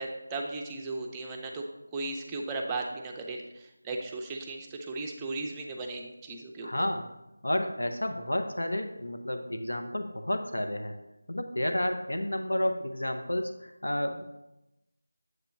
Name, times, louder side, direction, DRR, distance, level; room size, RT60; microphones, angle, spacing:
voice 1, 0.0-1.7 1.9-6.7, right 3 dB, 10° right, 0 dB, 0.5 m, -36 dB
voice 2, 6.6-7.1 7.4-11.0 11.3-14.2, left 1 dB, 90° left, 5 dB, 0.7 m, -31 dB
7.8 x 3.0 x 5.6 m, 0.93 s
figure-of-eight pair, 170°, 0 cm